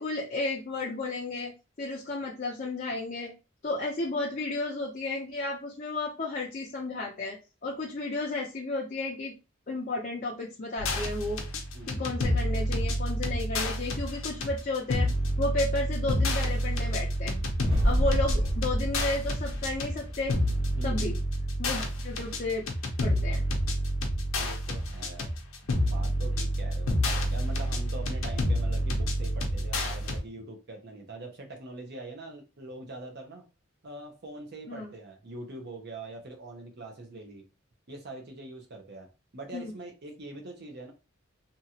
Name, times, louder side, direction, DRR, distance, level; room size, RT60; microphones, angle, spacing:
voice 1, 0.0-1.5 1.8-3.3 3.6-9.3 9.7-11.4 11.9-15.1 15.4-17.4 17.8-20.3 20.8-21.2 21.6-22.7 23.0-23.4 34.7-34.9 39.5-39.7, left 2 dB, 40° left, -3 dB, 0.6 m, -33 dB
sound 1, 10.8-30.2, equal, 80° left, 0.7 m, -29 dB
voice 2, 11.7-12.1 17.9-18.3 20.7-21.2 24.4-25.3 25.6-26.9 27.3-33.4 33.8-37.4 37.9-40.9, right 2 dB, 55° right, 2 dB, 0.8 m, -43 dB
sound 2, 17.6-21.9, equal, 25° right, 1.2 m, -31 dB
2.9 x 2.4 x 2.8 m, 0.30 s
head